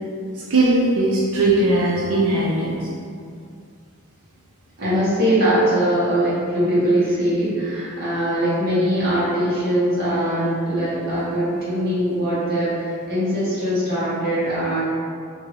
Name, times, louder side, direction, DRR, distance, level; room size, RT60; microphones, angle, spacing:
voice 1, 0.3-2.9, right 2 dB, 85° right, -5 dB, 0.4 m, -19 dB
voice 2, 4.8-14.8, right 1 dB, 45° right, -11 dB, 1.1 m, -21 dB
2.7 x 2.6 x 3.0 m, 2.3 s
head